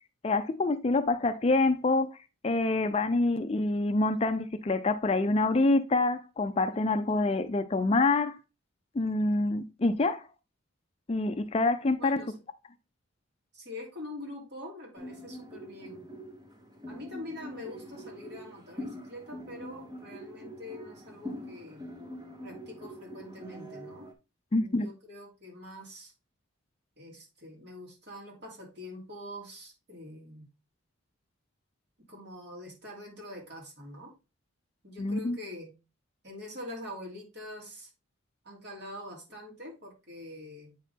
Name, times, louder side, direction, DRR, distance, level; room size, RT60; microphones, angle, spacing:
voice 1, 0.2-2.2 2.4-8.4 8.9-10.3 11.1-12.2 24.5-24.9 35.0-35.4, left 2 dB, 30° left, 0.4 m, -26 dB
voice 2, 12.0-12.4 13.5-16.1 16.9-21.9 22.4-24.1 24.5-26.1 27.0-30.5 32.1-34.1 34.8-35.7 36.2-37.9 38.4-40.7, left 1 dB, 50° right, 3.1 m, -44 dB
sound 1, 15.0-24.1, equal, 20° right, 1.0 m, -44 dB
8.2 x 4.3 x 3.5 m
head